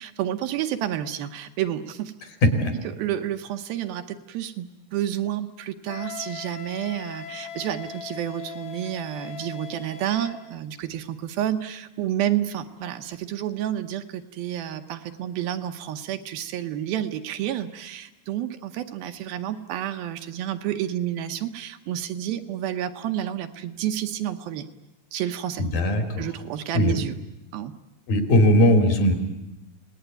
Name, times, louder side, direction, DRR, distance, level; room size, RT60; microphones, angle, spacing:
voice 1, 0.0-2.1 3.0-4.7 4.9-24.7 25.1-25.6 26.2-27.1 27.5-27.7, right 11 dB, 75° right, 7 dB, 2.8 m, -30 dB
voice 2, 2.4-2.7 25.6-26.3 26.7-27.0 28.1-29.1, left 1 dB, 65° left, 5 dB, 4.5 m, -19 dB
Wind instrument woodwind instrument, 5.9-10.4, left 7 dB, 85° left, 5.0 m, -39 dB
29.5 x 19.0 x 9.3 m, 0.98 s
omnidirectional pair, 4.4 m